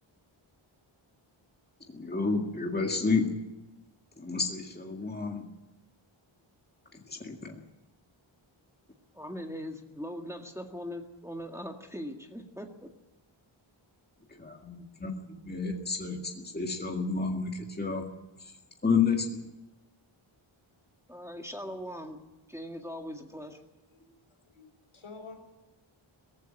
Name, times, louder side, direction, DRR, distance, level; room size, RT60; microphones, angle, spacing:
voice 1, 1.9-3.3 4.2-5.5 7.1-7.6 14.4-18.1 18.8-19.4, left 4 dB, 20° left, 1 dB, 2.0 m, -30 dB
voice 2, 9.1-12.9 21.1-22.2 22.5-23.6, equal, 5° right, 2 dB, 1.9 m, -40 dB
voice 3, 23.9-24.6 24.9-25.3, left 4 dB, 75° left, 2 dB, 6.1 m, -49 dB
18.5 x 15.0 x 10.0 m, 1.0 s
wide cardioid pair, 90°, 49 cm